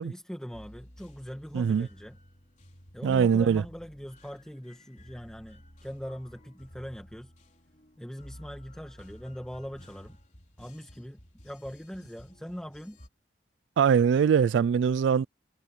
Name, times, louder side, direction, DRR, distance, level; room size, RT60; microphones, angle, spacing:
voice 1, 0.0-2.2 2.9-7.3 8.0-10.2 10.6-13.0, equal, 5° left, 1.4 m, -41 dB
sound 1, 0.5-13.1, equal, 45° left, 3.9 m, -53 dB
voice 2, 1.5-1.9 3.0-3.6 13.8-15.3, right 7 dB, 80° right, 0.3 m, -22 dB
head